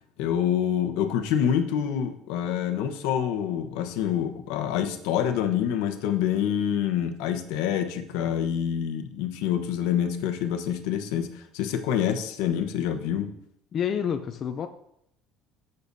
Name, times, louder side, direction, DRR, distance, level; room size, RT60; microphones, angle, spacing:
voice 1, 0.2-13.3, left 9 dB, 90° left, 7 dB, 1.0 m, -26 dB
voice 2, 13.7-14.7, left 8 dB, 30° left, 7 dB, 0.4 m, -28 dB
15.0 x 6.7 x 2.7 m, 0.74 s
cardioid pair, 180°, 0 cm